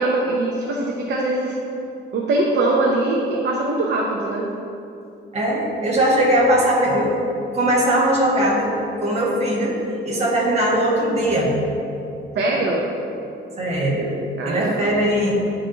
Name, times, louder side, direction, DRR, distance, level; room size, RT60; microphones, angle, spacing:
voice 1, 0.0-1.6 2.1-4.5 12.3-12.9 14.4-14.9, right 2 dB, 60° right, -2 dB, 0.7 m, -22 dB
voice 2, 5.3-7.2 7.5-8.7 9.0-9.8 10.0-11.5 13.6-14.1 14.4-15.3, right 1 dB, 35° right, -4 dB, 1.4 m, -20 dB
10.5 x 4.0 x 2.8 m, 2.7 s
cardioid pair, 130°, 20 cm